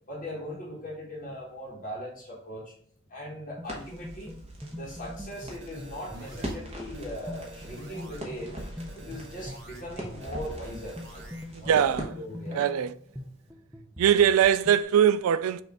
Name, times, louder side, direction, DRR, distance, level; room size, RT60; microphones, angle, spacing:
voice 1, 0.1-2.7 3.1-4.3 4.7-8.6 8.9-12.6, equal, 40° left, 1.1 m, -40 dB
sound 1, 3.6-14.8, left 1 dB, 5° right, 0.5 m, -44 dB
Crackle, 3.6-12.9, equal, 30° right, 1.0 m, -42 dB
sound 2, 5.3-6.5 6.9-8.2 8.6-9.8 10.2-11.4, right 2 dB, 55° right, 0.9 m, -49 dB
voice 2, 11.5-12.1 12.5-12.9 14.0-15.6, right 9 dB, 90° right, 0.3 m, -22 dB
6.1 x 2.5 x 3.4 m
head